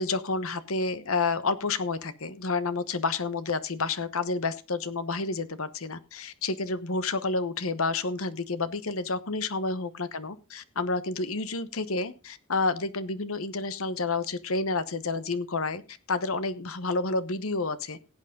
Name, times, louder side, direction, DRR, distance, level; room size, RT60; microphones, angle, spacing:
voice 1, 0.0-18.0, left 3 dB, 65° left, 14 dB, 1.0 m, -30 dB
17.0 x 8.3 x 3.8 m, 0.30 s
head